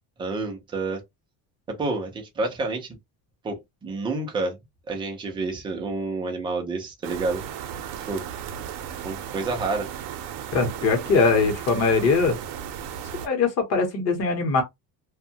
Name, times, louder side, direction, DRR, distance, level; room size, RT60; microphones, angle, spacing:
voice 1, 0.2-1.0 1.7-3.0 3.4-4.6 4.9-7.4 8.1-8.2 9.0-9.9, right 3 dB, 10° right, 0.3 m, -29 dB
sound 1, 7.0-13.3, right 9 dB, 65° right, 0.7 m, -35 dB
voice 2, 10.5-12.4 13.2-14.6, left 4 dB, 35° left, 0.9 m, -21 dB
2.6 x 2.2 x 2.6 m
cardioid pair, 170°, 45 cm